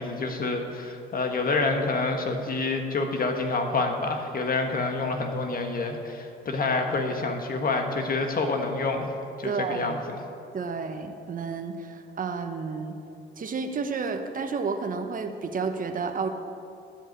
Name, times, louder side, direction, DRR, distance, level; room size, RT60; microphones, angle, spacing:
voice 1, 0.0-9.1 9.4-10.0, left 3 dB, 45° left, 4 dB, 1.4 m, -27 dB
voice 2, 9.4-10.0 10.5-13.0 13.4-16.3, right 5 dB, 45° right, 6 dB, 1.1 m, -31 dB
12.5 x 5.3 x 8.5 m, 2.7 s
cardioid pair, 90°, 20 cm